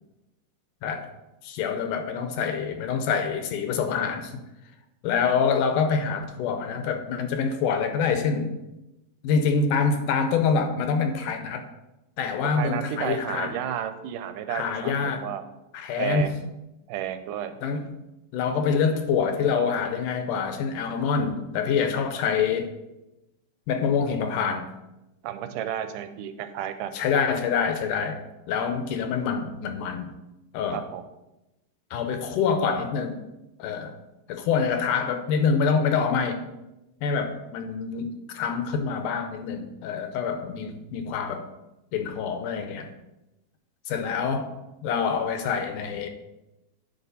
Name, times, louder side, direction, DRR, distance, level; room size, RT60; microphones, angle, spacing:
voice 1, 1.4-4.4 5.0-8.5 9.2-11.6 12.2-13.6 14.5-15.3 15.7-16.3 17.6-17.9 18.3-22.7 23.7-24.7 26.9-30.1 30.5-30.9 31.9-33.2 33.6-34.0 34.3-36.4 37.0-41.4 41.9-42.9 43.9-44.6 44.8-46.1, left 6 dB, 80° left, 7 dB, 2.2 m, -26 dB
voice 2, 12.5-15.4 16.0-16.5 16.9-17.6 25.2-27.0 30.7-31.0, right 10 dB, 85° right, 9 dB, 2.1 m, -32 dB
9.9 x 5.4 x 4.1 m, 0.96 s
omnidirectional pair, 3.8 m